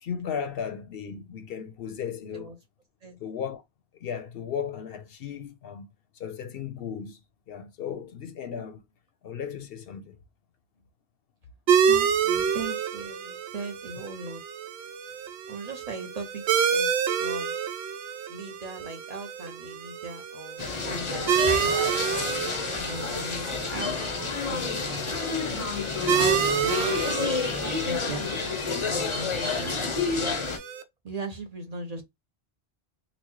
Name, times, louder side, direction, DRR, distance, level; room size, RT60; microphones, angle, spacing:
voice 1, 0.0-2.5 3.2-3.6 4.0-5.9 6.2-7.2 7.5-8.8 9.2-10.2 14.0-14.1, left 7 dB, 70° left, 0.8 m, -35 dB
sound 1, 11.7-30.8, right 7 dB, 75° right, 0.8 m, -29 dB
voice 2, 11.9-14.4 15.5-16.9 17.2-17.5 18.3-21.8 22.8-24.0 24.3-25.1 26.1-28.3 28.9-30.4 31.0-32.0, right 3 dB, 45° right, 0.7 m, -39 dB
sound 2, 20.6-30.6, left 5 dB, 35° left, 0.6 m, -29 dB
4.0 x 2.1 x 3.0 m
omnidirectional pair, 1.1 m